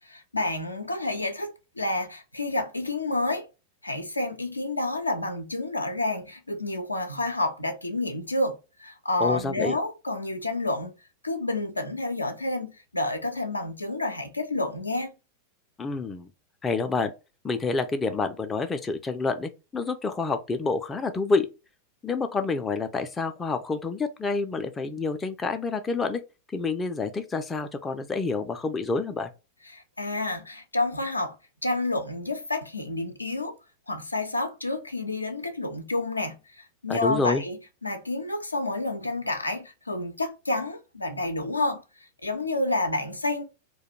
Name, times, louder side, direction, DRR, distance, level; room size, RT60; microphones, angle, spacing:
voice 1, 0.3-3.5 3.8-10.9 11.2-15.1 29.7-31.4 31.6-33.6 33.9-43.4, left 2 dB, 85° left, 0.4 m, -29 dB
voice 2, 9.2-9.7 15.8-16.3 16.6-17.1 17.4-21.5 22.0-26.2 26.5-29.3 36.9-37.4, left 4 dB, 15° left, 0.3 m, -28 dB
2.2 x 2.1 x 3.0 m
figure-of-eight pair, 90°, 0 cm